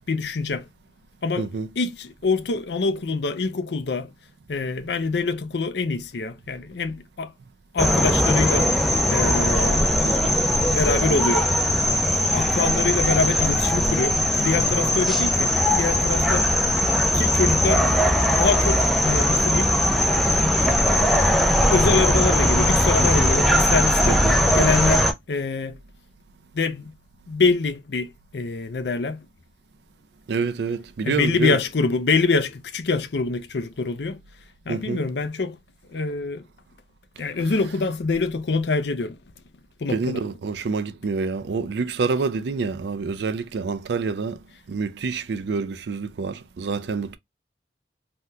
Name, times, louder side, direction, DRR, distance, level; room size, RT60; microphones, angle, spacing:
voice 1, 0.1-0.7 1.2-1.5 1.8-4.1 4.5-7.3 7.7-8.7 9.1-9.9 10.7-11.5 12.2-16.5 17.1-17.9 18.2-19.7 21.7-24.2 24.5-25.8 26.5-26.9 27.3-29.3 31.0-34.2 34.7-35.6 35.9-36.4 37.2-39.2 39.8-40.2, left 4 dB, 70° left, 0.5 m, -25 dB
voice 2, 1.4-1.7 10.0-10.4 24.1-24.3 30.3-31.6 34.7-35.0 39.9-44.4 44.7-47.2, right 4 dB, 65° right, 0.4 m, -27 dB
sound 1, 7.8-25.1, equal, ahead, 0.4 m, -20 dB
3.4 x 2.3 x 2.7 m
head